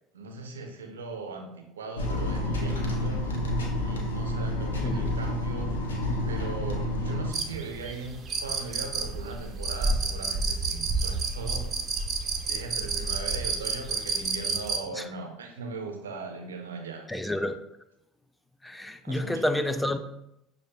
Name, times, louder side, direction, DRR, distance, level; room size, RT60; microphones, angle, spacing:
voice 1, 0.1-3.5 3.9-5.7 6.3-11.7 12.4-17.1 19.0-19.8, right 3 dB, 90° right, 4 dB, 0.5 m, -39 dB
sound 1, 2.0-7.3, left 1 dB, 90° left, 0.5 m, -29 dB
sound 2, 7.3-14.8, right 4 dB, 40° right, 0.5 m, -30 dB
voice 2, 17.1-17.6 18.6-20.0, left 1 dB, 10° left, 9 dB, 0.3 m, -29 dB
6.4 x 2.2 x 2.2 m, 0.83 s
hypercardioid pair, 75°, 0 cm